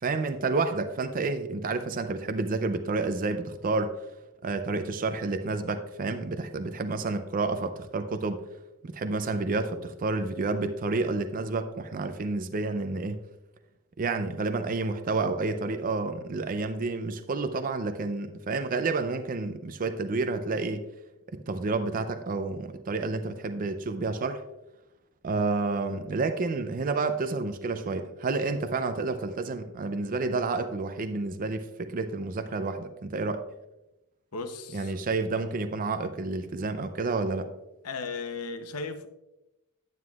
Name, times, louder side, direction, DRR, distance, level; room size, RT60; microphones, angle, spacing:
voice 1, 0.0-4.0 4.4-8.5 8.8-13.2 14.0-20.9 21.3-24.4 25.2-33.4 34.7-37.5, right 3 dB, 40° right, 0.4 m, -30 dB
voice 2, 34.3-35.0 37.8-39.1, left 4 dB, 85° left, 0.8 m, -36 dB
9.4 x 9.2 x 2.4 m
head